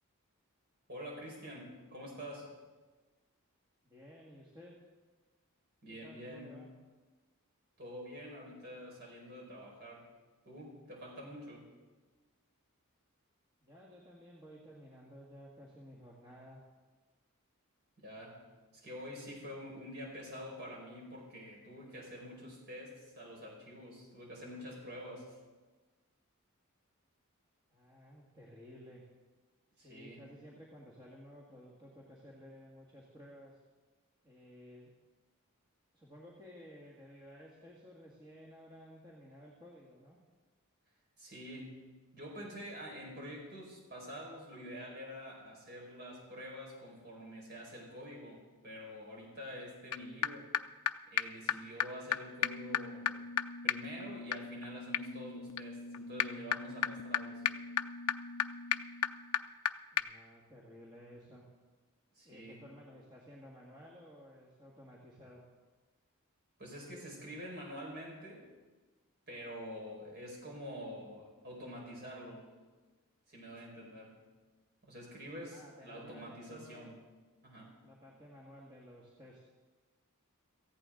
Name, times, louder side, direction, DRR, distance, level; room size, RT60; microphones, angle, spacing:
voice 1, 0.9-2.5 5.8-6.5 7.8-10.1 10.4-11.7 18.0-18.4 18.7-25.4 29.8-30.2 41.2-41.8 42.1-50.5 51.1-53.1 53.6-57.4 62.1-62.6 66.6-68.5 69.3-72.5 73.3-74.2 74.8-77.0 77.4-77.8, equal, 45° right, -2 dB, 5.1 m, -47 dB
voice 2, 3.8-4.8 5.9-6.7 13.6-16.6 27.7-29.0 29.7-33.6 34.2-34.9 35.9-40.2 59.9-61.4 62.3-65.4 75.5-76.9 77.8-79.4, equal, 20° right, -4 dB, 1.8 m, -54 dB
sound 1, 49.9-50.0 50.2-50.3 50.5-50.6 50.9-51.0 51.2-51.3 51.5-51.6 51.8-51.9 52.1-52.2 52.4-59.7 60.0-60.1, left 9 dB, 80° left, 0.5 m, -35 dB
17.5 x 14.5 x 3.9 m, 1.3 s
head